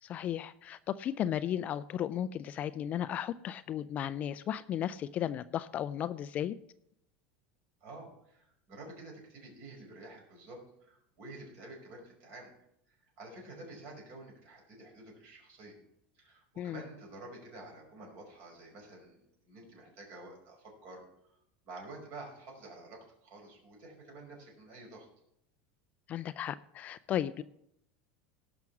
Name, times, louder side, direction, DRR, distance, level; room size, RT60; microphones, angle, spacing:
voice 1, 0.0-6.6 16.6-16.8 26.1-27.4, left 10 dB, 30° left, 14 dB, 0.3 m, -35 dB
voice 2, 7.8-12.5 12.9-15.7 16.1-21.0 21.6-25.1, right 2 dB, 50° right, 0 dB, 5.4 m, -49 dB
18.0 x 6.0 x 5.9 m, 0.76 s
supercardioid pair, 160°, 5 cm